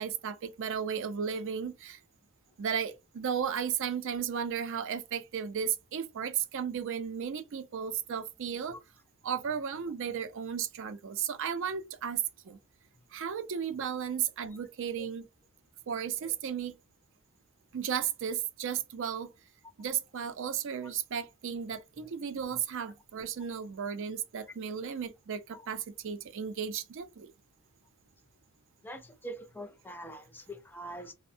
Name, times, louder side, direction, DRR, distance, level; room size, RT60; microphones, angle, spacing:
voice 1, 0.0-2.0 2.6-8.8 9.2-12.6 13.1-15.3 15.9-16.8 17.7-19.3 19.8-27.3, right 7 dB, 60° right, 0.4 m, -34 dB
voice 2, 28.8-31.1, right 1 dB, 10° left, 0.4 m, -44 dB
3.2 x 2.0 x 2.6 m
head